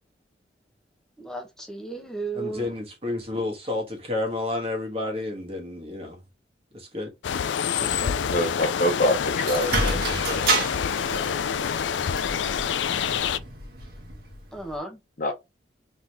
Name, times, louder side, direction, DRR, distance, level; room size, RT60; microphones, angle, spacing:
voice 1, 1.2-2.7 14.5-15.0, right 3 dB, 5° left, 1.2 m, -34 dB
voice 2, 2.3-6.2 6.7-7.1 7.7-8.1, left 2 dB, 35° right, 1.7 m, -31 dB
sound 1, 7.2-13.4, left 7 dB, 80° left, 0.4 m, -27 dB
voice 3, 8.3-11.3 11.9-12.0 15.2-15.3, equal, 50° left, 0.9 m, -27 dB
sound 2, 9.4-14.8, right 3 dB, 60° right, 1.6 m, -30 dB
4.0 x 3.7 x 3.0 m
head